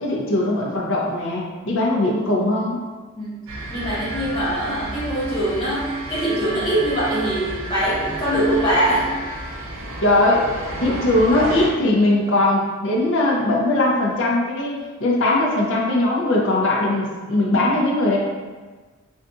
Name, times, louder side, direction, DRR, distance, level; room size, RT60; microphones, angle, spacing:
voice 1, 0.0-2.8 10.0-10.5 10.8-18.2, left 2 dB, 60° left, -3 dB, 0.6 m, -20 dB
voice 2, 3.1-9.1, right 1 dB, 25° left, -11 dB, 0.8 m, -23 dB
sound 1, 3.5-11.7, right 2 dB, 65° right, 0.5 m, -32 dB
3.7 x 2.5 x 2.3 m, 1.4 s
head